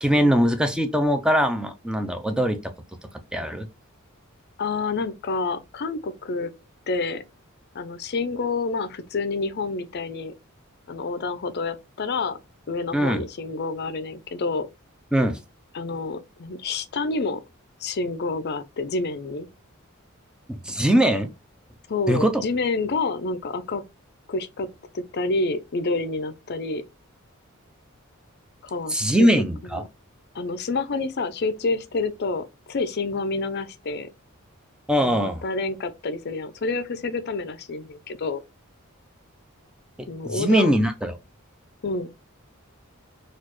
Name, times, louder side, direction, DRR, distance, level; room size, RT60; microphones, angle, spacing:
voice 1, 0.0-2.7 3.3-3.7 12.9-13.2 15.1-15.4 20.5-21.3 22.1-22.4 28.9-29.8 34.9-35.4 40.0-41.1, equal, 5° right, 0.4 m, -21 dB
voice 2, 4.6-6.5 6.9-7.2 7.7-10.3 10.9-12.4 12.7-14.7 15.7-17.4 17.8-19.5 21.9-23.8 24.3-24.7 24.9-26.8 28.6-29.3 29.7-29.8 30.3-34.1 35.0-38.4 40.1-40.7 41.8-42.1, left 3 dB, 50° left, 0.5 m, -28 dB
4.1 x 2.4 x 3.0 m
head